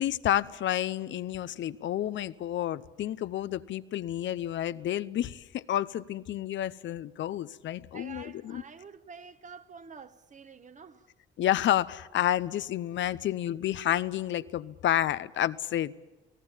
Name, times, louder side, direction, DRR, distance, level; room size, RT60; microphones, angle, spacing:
voice 1, 0.0-8.6 11.4-15.9, left 12 dB, 70° left, 0.8 m, -30 dB
voice 2, 7.9-11.1, right 5 dB, 40° right, 1.2 m, -48 dB
30.0 x 18.5 x 7.3 m
cardioid pair, 90°, 20 cm